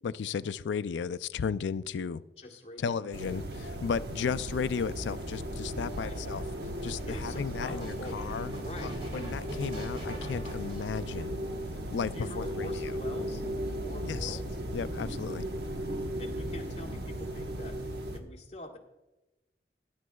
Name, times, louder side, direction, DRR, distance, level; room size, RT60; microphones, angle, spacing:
voice 1, 0.0-2.2 2.8-6.4 6.8-11.4 11.9-13.0 14.0-14.4 14.7-15.5, left 6 dB, 90° left, 0.4 m, -34 dB
voice 2, 2.4-3.0 5.9-6.2 7.1-8.2 8.6-9.0 11.2-11.3 12.1-13.4 13.8-14.5 16.2-17.8 18.1-18.8, left 1 dB, 30° left, 1.3 m, -45 dB
sound 1, 3.1-18.2, equal, 65° right, 1.1 m, -36 dB
sound 2, 3.7-11.7 12.5-13.4, right 1 dB, 30° right, 2.3 m, -47 dB
19.0 x 9.5 x 2.3 m
head